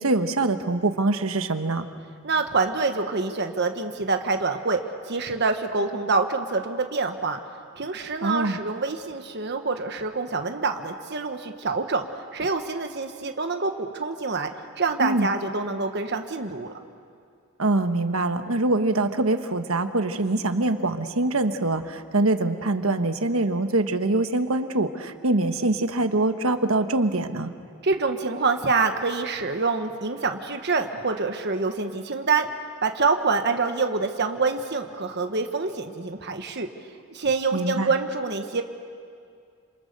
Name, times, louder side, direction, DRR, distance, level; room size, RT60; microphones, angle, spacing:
voice 1, 0.0-1.9 8.2-8.6 15.0-15.3 17.6-27.5 37.5-37.9, right 2 dB, 90° right, 8 dB, 1.3 m, -24 dB
voice 2, 2.2-4.8 5.1-7.4 7.8-12.0 12.3-14.5 14.8-16.7 27.8-32.5 32.8-36.7 37.1-38.6, right 4 dB, 55° right, 6 dB, 1.3 m, -26 dB
27.5 x 27.0 x 6.8 m, 2.3 s
head